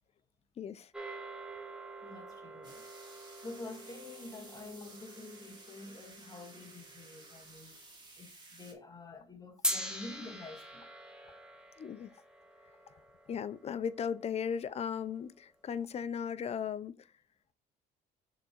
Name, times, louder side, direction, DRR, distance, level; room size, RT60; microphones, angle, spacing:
voice 1, 0.6-0.9 11.8-12.1 13.3-17.1, left 7 dB, 40° left, 0.5 m, -37 dB
sound 1, 0.9-7.4 9.6-14.1, equal, 5° right, 1.3 m, -43 dB
voice 2, 2.0-2.9 3.4-7.8 8.2-11.0, left 2 dB, 20° left, 1.6 m, -48 dB
sound 2, 2.6-8.7, right 2 dB, 25° right, 2.1 m, -54 dB
6.5 x 3.7 x 4.4 m
cardioid pair, 110°, 17 cm